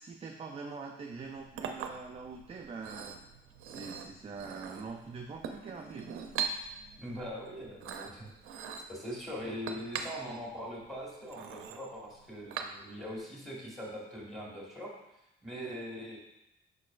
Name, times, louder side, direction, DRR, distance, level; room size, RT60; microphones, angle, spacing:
voice 1, 0.0-3.2 3.6-6.1, right 4 dB, 30° right, 2 dB, 0.4 m, -43 dB
Chink clink, 1.1-13.2, right 7 dB, 80° right, 0.5 m, -42 dB
sound 1, 5.5-8.8 9.1-9.2, right 2 dB, 50° left, 1.2 m, -62 dB
voice 2, 6.9-8.3 8.9-14.9 15.4-16.2, equal, ahead, -4 dB, 1.7 m, -41 dB
5.2 x 4.1 x 2.5 m, 0.86 s
cardioid pair, 85°, 21 cm